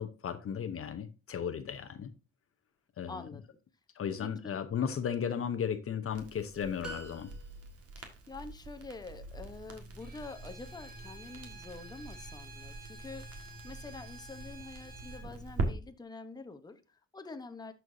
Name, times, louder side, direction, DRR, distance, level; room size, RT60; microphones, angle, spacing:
voice 1, 0.0-2.1 3.0-3.3 4.0-7.3, left 7 dB, 45° left, 0.8 m, -35 dB
voice 2, 3.1-3.6 4.2-4.7 8.0-17.7, left 3 dB, 15° left, 0.8 m, -47 dB
Crackle, 6.1-15.7, right 3 dB, 50° right, 1.7 m, -43 dB
sound 1, 6.8-8.0, right 1 dB, 5° right, 2.3 m, -46 dB
Bowed string instrument, 10.0-15.3, right 3 dB, 30° right, 2.0 m, -52 dB
12.5 x 4.6 x 2.6 m
cardioid pair, 90°, 30 cm